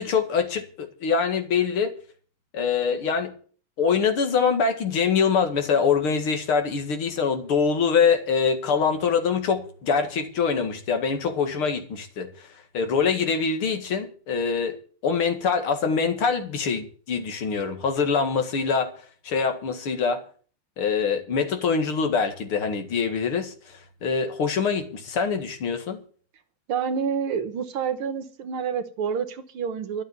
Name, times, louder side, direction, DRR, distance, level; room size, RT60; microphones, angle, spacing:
voice 1, 0.0-1.9 2.5-3.3 3.8-12.5 12.7-14.8 15.0-18.9 19.2-20.2 20.8-26.0, left 5 dB, 85° left, 2.9 m, -24 dB
voice 2, 26.7-30.0, right 7 dB, 85° right, 2.2 m, -28 dB
12.5 x 7.8 x 9.4 m
omnidirectional pair, 2.3 m